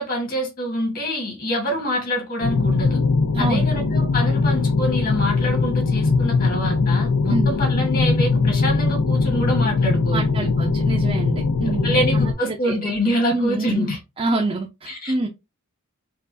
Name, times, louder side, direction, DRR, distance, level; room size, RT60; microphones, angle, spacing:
voice 1, 0.0-3.0 3.4-10.2 11.6-14.0 14.9-15.3, equal, 40° left, 1.5 m, -26 dB
sound 1, 2.4-12.3, left 4 dB, 90° left, 0.5 m, -20 dB
voice 2, 3.3-3.7 7.3-7.5 10.1-12.0 12.5-12.8 13.3-13.9 14.2-15.3, right 2 dB, 25° right, 0.4 m, -26 dB
4.5 x 2.4 x 2.6 m
head